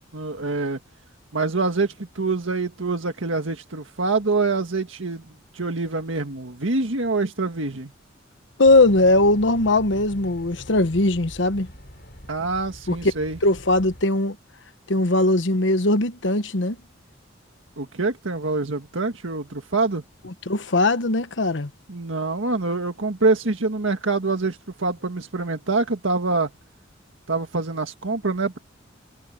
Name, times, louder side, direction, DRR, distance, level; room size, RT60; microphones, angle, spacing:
voice 1, 0.1-0.8 1.3-5.2 5.5-7.9 12.3-13.4 17.8-20.0 21.9-26.5 27.3-28.6, right 3 dB, 90° right, 1.7 m, -25 dB
voice 2, 8.6-11.7 12.9-13.0 13.4-14.4 14.9-16.8 20.5-21.7, left 2 dB, 75° left, 1.2 m, -20 dB
sound 1, 8.6-14.0, equal, 55° left, 4.4 m, -43 dB
head